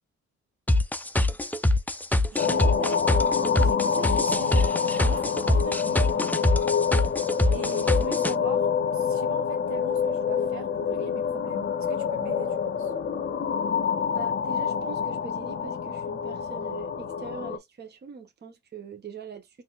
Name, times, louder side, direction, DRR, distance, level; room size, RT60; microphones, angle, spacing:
sound 1, 0.7-8.3, left 1 dB, 5° left, 0.4 m, -23 dB
voice 1, 2.3-3.0 3.5-6.3 7.5-8.7 8.9-12.9, right 7 dB, 70° right, 1.1 m, -41 dB
sound 2, 2.4-17.6, left 7 dB, 35° left, 0.8 m, -27 dB
voice 2, 14.1-19.6, right 5 dB, 35° right, 0.8 m, -42 dB
4.2 x 2.6 x 2.3 m
cardioid pair, 90°, 30 cm